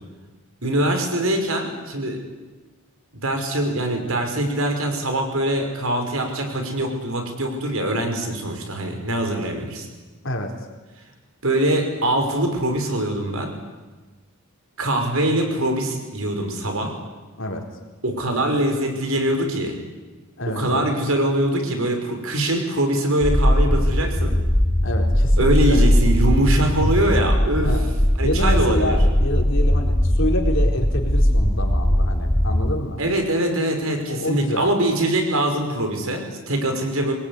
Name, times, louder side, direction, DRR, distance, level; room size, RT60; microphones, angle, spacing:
voice 1, 0.6-2.2 3.2-9.9 11.4-13.5 14.8-17.0 18.0-19.7 20.5-24.3 25.4-27.8 28.2-29.0 33.0-37.1, right 1 dB, 75° right, 4 dB, 5.7 m, -23 dB
voice 2, 20.4-20.9 24.8-25.9 27.6-27.8 28.2-33.0 34.1-34.7, left 1 dB, 60° left, 2 dB, 4.3 m, -27 dB
sound 1, 23.2-32.7, equal, 15° left, 1.3 m, -19 dB
24.5 x 21.0 x 9.9 m, 1.2 s
head